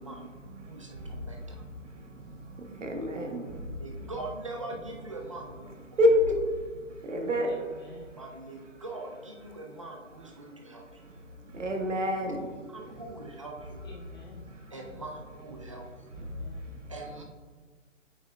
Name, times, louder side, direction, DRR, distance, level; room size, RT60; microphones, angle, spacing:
voice 1, 0.0-4.2 4.7-4.9 5.2-7.6 8.1-8.3 9.4-9.5 10.7-11.1 11.4-13.8 14.5-15.0 15.4-17.2, equal, 70° right, 3 dB, 1.4 m, -32 dB
voice 2, 0.7-1.4 3.8-5.7 8.2-10.8 12.7-13.8 14.7-15.8 16.9-17.2, right 2 dB, 25° right, 1 dB, 0.5 m, -42 dB
voice 3, 7.4-8.2 11.4-11.5 13.8-14.5 16.1-16.7, left 2 dB, 20° left, -3 dB, 0.9 m, -50 dB
8.4 x 5.9 x 2.3 m, 1.4 s
figure-of-eight pair, 155°, 39 cm